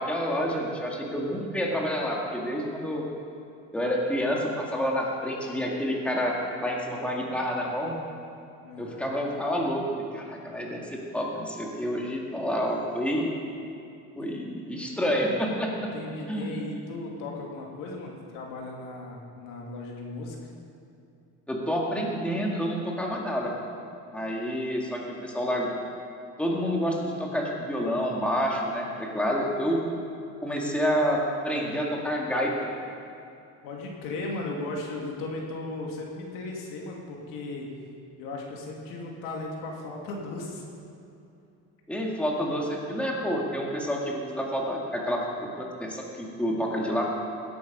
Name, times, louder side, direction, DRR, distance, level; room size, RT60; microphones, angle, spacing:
voice 1, 0.0-3.1 3.7-8.0 8.8-13.3 14.2-15.9 16.3-16.5 21.5-23.5 24.1-25.7 26.4-29.8 30.4-31.2 31.4-32.7 41.9-47.0, equal, 5° left, -2 dB, 2.0 m, -28 dB
voice 2, 8.6-9.1 14.2-14.3 14.9-15.0 15.9-20.4 33.6-37.7 38.2-40.6, left 2 dB, 90° left, -1 dB, 2.5 m, -36 dB
16.5 x 8.7 x 5.4 m, 2.7 s
cardioid pair, 125°, 32 cm